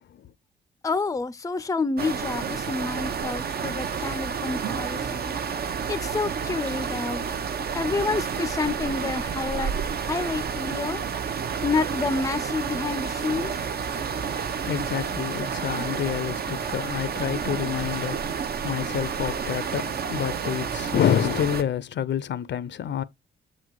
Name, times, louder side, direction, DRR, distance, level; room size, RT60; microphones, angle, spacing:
voice 1, 0.8-5.4 5.9-7.2 7.7-9.7 10.0-11.0 11.6-13.5, left 4 dB, 15° left, 0.5 m, -28 dB
sound 1, 2.0-21.6, right 6 dB, 55° right, 0.8 m, -30 dB
voice 2, 14.6-23.0, left 9 dB, 65° left, 0.6 m, -28 dB
7.5 x 4.2 x 4.7 m
cardioid pair, 115°, 20 cm